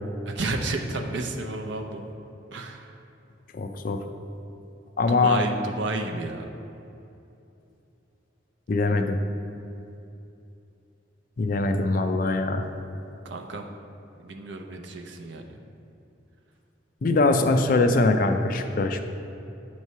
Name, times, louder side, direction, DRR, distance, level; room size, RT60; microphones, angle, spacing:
voice 1, 0.2-2.1 2.5-3.0 5.1-6.5 13.2-13.7 14.2-15.6, right 2 dB, 75° right, 4 dB, 0.6 m, -32 dB
voice 2, 3.5-4.0 5.0-5.4 8.7-9.2 11.4-12.7 17.0-19.0, left 3 dB, 45° left, 6 dB, 0.4 m, -22 dB
8.1 x 3.2 x 5.5 m, 2.8 s
head